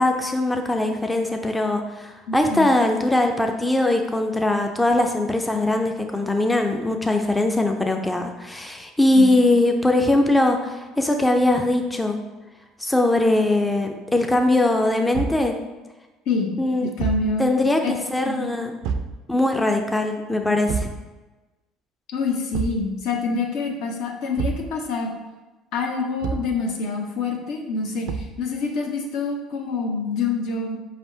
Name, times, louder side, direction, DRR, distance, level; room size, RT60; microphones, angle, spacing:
voice 1, 0.0-12.2 12.8-15.6 16.6-16.9 17.4-18.7 19.3-20.9, left 2 dB, 10° left, 4 dB, 0.4 m, -21 dB
voice 2, 2.3-2.7 9.2-9.3 16.3-16.5 16.8-17.5 17.8-17.9 18.2-18.5 22.1-25.1 25.7-30.8, left 4 dB, 70° left, 2 dB, 0.7 m, -26 dB
Thump thud, 15.1-15.5 17.0-17.3 18.8-19.2 20.7-21.0 22.5-22.9 24.4-24.7 26.2-26.6 28.1-28.4, right 5 dB, 75° right, 0.3 m, -27 dB
4.8 x 3.4 x 2.7 m, 1.2 s
supercardioid pair, 105°, 0 cm